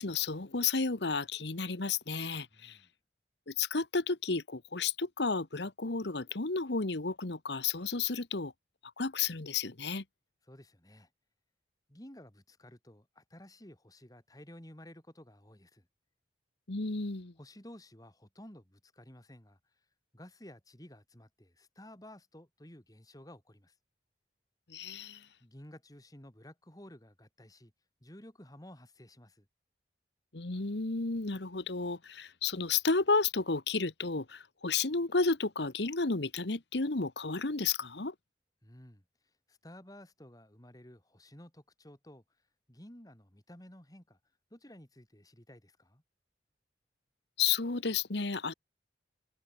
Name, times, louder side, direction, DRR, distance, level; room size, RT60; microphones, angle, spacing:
voice 1, 0.0-2.8 3.5-8.5 9.0-10.0 16.7-17.3 24.7-25.3 30.3-38.1 47.4-48.5, left 4 dB, 70° left, 1.4 m, -32 dB
voice 2, 2.5-2.9 10.5-11.1 11.9-15.9 17.4-19.6 20.1-23.7 25.4-27.7 28.0-29.5 38.6-42.2 42.7-44.2 44.5-46.0, left 1 dB, 20° left, 3.4 m, -53 dB
head